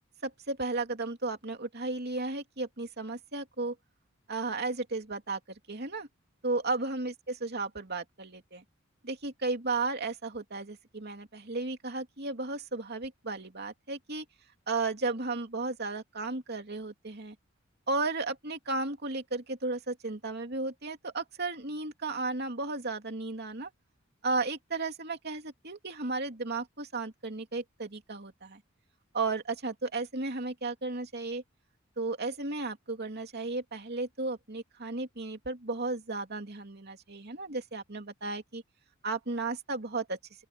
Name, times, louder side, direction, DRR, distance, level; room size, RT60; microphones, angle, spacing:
voice 1, 0.2-3.7 4.3-5.4 5.7-6.1 6.4-8.6 9.0-14.2 14.7-17.3 17.9-23.7 24.2-28.6 29.1-31.4 32.0-38.6 39.0-40.2, right 3 dB, 55° right, 2.9 m, -34 dB
open air
head